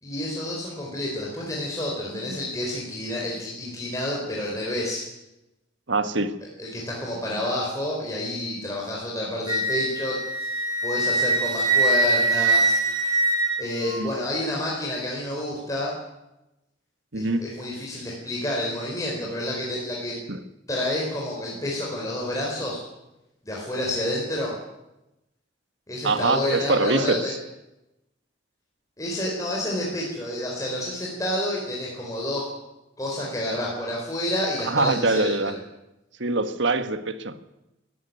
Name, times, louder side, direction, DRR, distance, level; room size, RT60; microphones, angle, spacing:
voice 1, 0.0-5.1 6.6-12.8 13.6-15.9 17.1-20.2 20.7-22.8 23.4-24.5 25.9-27.3 29.0-32.4 33.0-35.4, left 1 dB, 15° left, -3 dB, 4.4 m, -29 dB
voice 2, 5.9-6.3 14.0-14.1 17.1-17.4 20.3-20.4 26.0-27.2 34.7-35.5 36.2-37.3, right 3 dB, 70° right, 10 dB, 1.5 m, -24 dB
Wind instrument woodwind instrument, 9.5-14.1, right 2 dB, 20° right, 5.5 m, -23 dB
21.0 x 14.0 x 9.4 m, 0.94 s
head